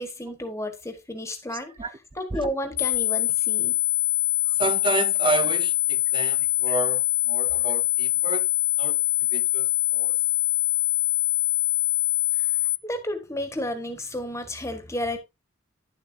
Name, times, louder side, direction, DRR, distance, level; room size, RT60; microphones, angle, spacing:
voice 1, 0.0-1.7 2.1-3.8 6.7-6.8 12.3-12.5 12.8-15.2, left 1 dB, 15° left, 1.6 m, -32 dB
sound 1, 2.8-12.8, left 16 dB, 50° left, 0.3 m, -24 dB
voice 2, 4.6-8.5 8.8-9.0 9.3-10.2, right 4 dB, 25° right, 0.6 m, -30 dB
10.5 x 7.3 x 2.7 m
head